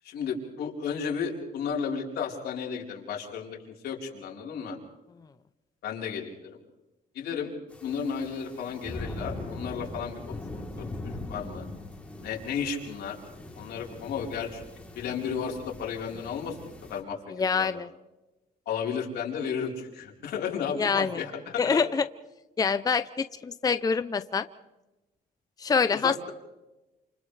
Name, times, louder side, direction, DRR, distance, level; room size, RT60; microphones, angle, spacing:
voice 1, 0.0-3.6 3.8-4.8 5.8-6.6 7.1-7.5 7.8-11.7 12.2-13.2 13.5-14.7 14.9-17.7 18.7-21.3 25.9-26.3, left 6 dB, 90° left, -1 dB, 4.4 m, -33 dB
sound 1, 7.7-17.0, left 2 dB, 10° left, 3.6 m, -41 dB
voice 2, 17.3-17.9 20.7-21.2 21.6-22.0 22.6-24.5 25.6-26.1, left 5 dB, 25° left, 11 dB, 0.6 m, -25 dB
29.0 x 28.0 x 3.4 m, 1.0 s
cardioid pair, 130°, 16 cm